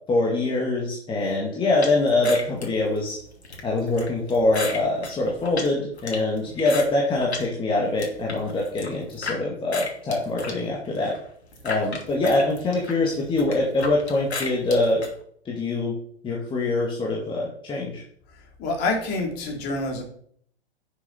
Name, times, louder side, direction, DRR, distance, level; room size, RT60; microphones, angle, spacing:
voice 1, 0.1-3.2 3.6-11.1 11.6-15.0 15.5-15.9 16.2-18.0, left 2 dB, 15° left, -3 dB, 2.0 m, -24 dB
sound 1, 1.8-7.5 7.8-9.4 9.7-15.1, left 3 dB, 75° left, 2.9 m, -34 dB
voice 2, 18.3-20.0, left 2 dB, 30° left, 1 dB, 3.0 m, -27 dB
11.0 x 6.9 x 4.2 m, 0.62 s
figure-of-eight pair, 110°, 33 cm